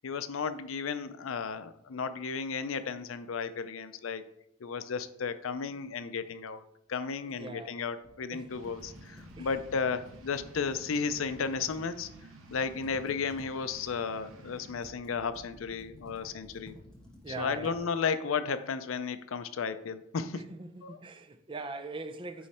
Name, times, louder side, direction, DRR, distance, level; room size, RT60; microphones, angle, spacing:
voice 1, 0.0-4.2 4.6-6.6 6.9-12.1 12.5-16.8 17.4-20.5 20.8-21.0, left 5 dB, 85° left, 0.5 m, -34 dB
voice 2, 7.3-7.8 8.3-8.7 9.4-9.5 17.2-17.9 20.3-22.5, right 3 dB, 25° right, 0.5 m, -42 dB
Computer keyboard, 8.0-12.2 12.5-17.8, left 1 dB, 5° left, 1.2 m, -54 dB
sound 1, 8.5-14.7, right 2 dB, 85° right, 1.0 m, -53 dB
9.4 x 3.2 x 4.2 m
head